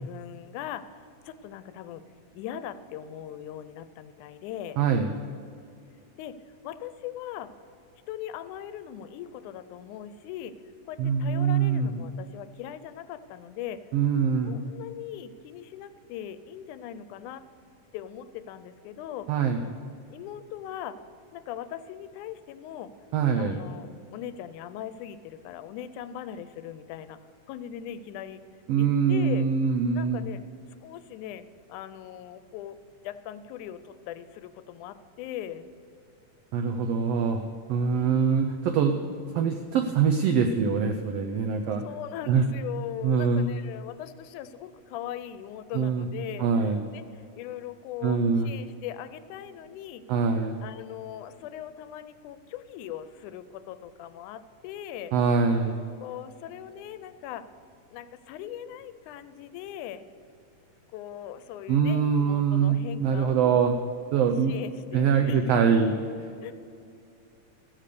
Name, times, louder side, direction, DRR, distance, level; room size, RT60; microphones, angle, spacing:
voice 1, 0.0-2.0 2.3-4.8 6.2-6.4 6.6-7.5 8.1-10.5 10.9-13.8 14.4-17.4 17.9-19.3 20.1-21.0 21.3-22.9 23.4-27.2 27.5-28.4 28.8-29.5 29.9-30.4 30.8-32.8 33.0-35.7 37.9-38.5 41.8-55.1 56.0-57.4 57.9-60.1 60.9-63.6 64.5-65.6 66.4-66.5, left 10 dB, 80° left, 12 dB, 2.0 m, -40 dB
voice 2, 4.8-5.1 11.0-12.0 13.9-14.5 19.3-19.6 23.1-23.6 28.7-30.2 36.5-38.9 39.3-41.8 42.3-42.5 43.0-43.5 45.7-46.1 46.4-46.8 48.0-48.5 50.1-50.6 55.1-55.8 61.7-63.7 64.1-64.6 64.9-65.9 66.2-66.5, right 6 dB, 85° right, 5 dB, 1.4 m, -24 dB
14.5 x 7.5 x 6.7 m, 2.5 s
omnidirectional pair, 3.6 m